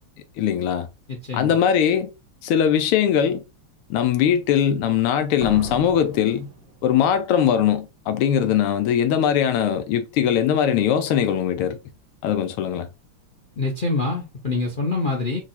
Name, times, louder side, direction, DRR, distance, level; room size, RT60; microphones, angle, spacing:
voice 1, 0.4-0.9 1.3-2.1 2.4-3.4 3.9-6.5 6.8-11.8 12.2-12.9, left 9 dB, 90° left, 1.6 m, -20 dB
voice 2, 1.1-1.6 13.6-15.5, left 3 dB, 60° left, 0.5 m, -25 dB
sound 1, 5.4-7.2, right 4 dB, 70° right, 1.3 m, -37 dB
4.6 x 2.5 x 4.2 m
omnidirectional pair, 2.4 m